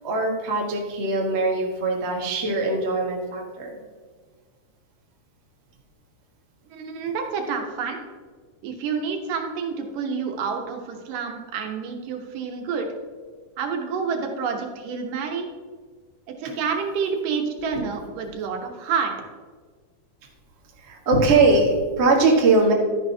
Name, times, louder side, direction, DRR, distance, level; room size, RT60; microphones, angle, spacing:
voice 1, 0.0-3.7 20.8-22.7, right 3 dB, 65° right, 0 dB, 0.6 m, -21 dB
voice 2, 6.7-8.0 8.6-12.9 13.6-15.5 16.4-19.1, right 5 dB, 80° right, 3 dB, 2.8 m, -28 dB
12.0 x 9.8 x 2.8 m, 1.5 s
omnidirectional pair, 3.8 m